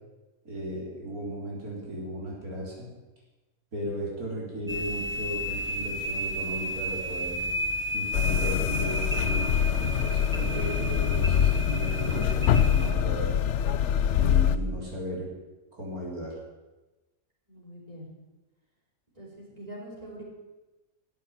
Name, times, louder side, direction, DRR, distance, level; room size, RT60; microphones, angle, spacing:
voice 1, 0.4-2.9 3.7-7.5 7.9-13.4 14.2-15.3 15.7-16.4, equal, 85° right, -3 dB, 4.1 m, -36 dB
sound 1, 4.7-12.9, equal, 10° right, 1.1 m, -33 dB
sound 2, 8.1-14.6, left 9 dB, 60° left, 0.8 m, -25 dB
voice 2, 14.0-14.5 17.5-18.2 19.2-20.2, equal, 25° right, -7 dB, 5.2 m, -44 dB
13.0 x 8.5 x 9.2 m, 1.1 s
omnidirectional pair, 1.5 m